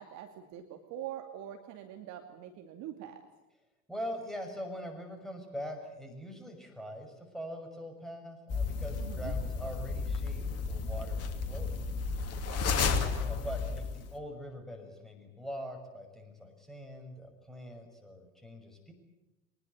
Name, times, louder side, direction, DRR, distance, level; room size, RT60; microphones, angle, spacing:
voice 1, 0.0-3.2 9.0-9.3 12.5-12.7, right 11 dB, 40° right, 5 dB, 2.6 m, -44 dB
voice 2, 3.9-11.8 12.8-18.9, equal, ahead, 3 dB, 6.2 m, -43 dB
sound 1, 8.5-14.1, left 4 dB, 35° left, 2.8 m, -33 dB
24.0 x 20.0 x 9.4 m, 1.0 s
figure-of-eight pair, 80°, 43 cm